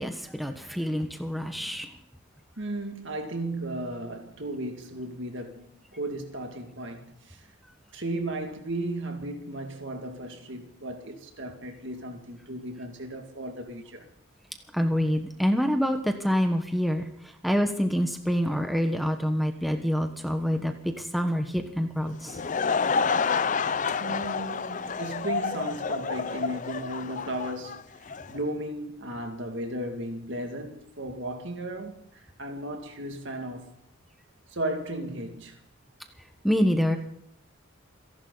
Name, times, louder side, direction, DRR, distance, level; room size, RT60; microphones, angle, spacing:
voice 1, 0.0-2.0 14.7-22.4 36.4-37.0, equal, ahead, 1.2 m, -26 dB
voice 2, 2.6-7.5 7.9-14.1 24.0-33.7 34.5-35.6, right 1 dB, 60° right, 2.4 m, -35 dB
Laughter / Crowd, 22.1-28.4, left 5 dB, 35° left, 0.5 m, -29 dB
28.5 x 11.5 x 4.0 m
head